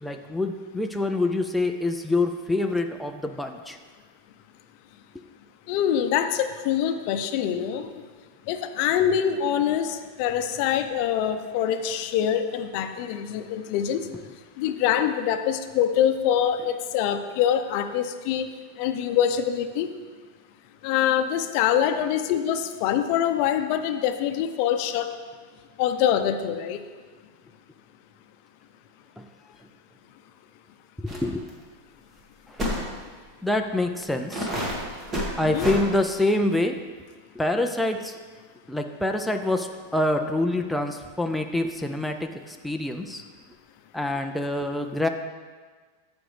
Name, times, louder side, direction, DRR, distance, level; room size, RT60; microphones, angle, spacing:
voice 1, 0.0-3.8 5.1-5.2 14.1-14.2 29.2-29.3 31.0-31.5 32.5-32.6 33.4-34.5 35.4-36.8 37.4-38.2 38.7-43.2 43.9-45.1, left 2 dB, ahead, 4 dB, 0.4 m, -26 dB
voice 2, 5.7-7.9 8.5-14.0 14.6-18.5 18.8-19.9 20.8-25.1 25.8-26.8 35.4-35.7, left 9 dB, 50° left, 7 dB, 0.6 m, -24 dB
sound 1, 31.1-31.2 31.5-31.6 32.6-32.9 33.6-33.7 34.3-35.8, equal, 20° right, 1.6 m, -29 dB
14.0 x 5.2 x 3.3 m, 1.5 s
supercardioid pair, 140°, 0 cm